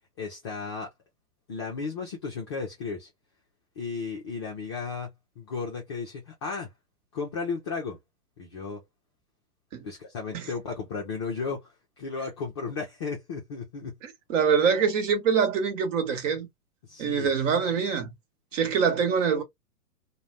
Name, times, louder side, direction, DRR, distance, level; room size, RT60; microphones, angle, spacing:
voice 1, 0.2-0.9 1.5-3.1 3.8-6.7 7.1-8.0 8.4-8.8 9.8-14.0 16.8-17.3, left 4 dB, 20° left, 0.4 m, -34 dB
voice 2, 14.0-16.5 17.0-18.1 18.5-19.4, right 6 dB, 50° right, 1.2 m, -25 dB
2.4 x 2.1 x 3.1 m
figure-of-eight pair, 110°, 48 cm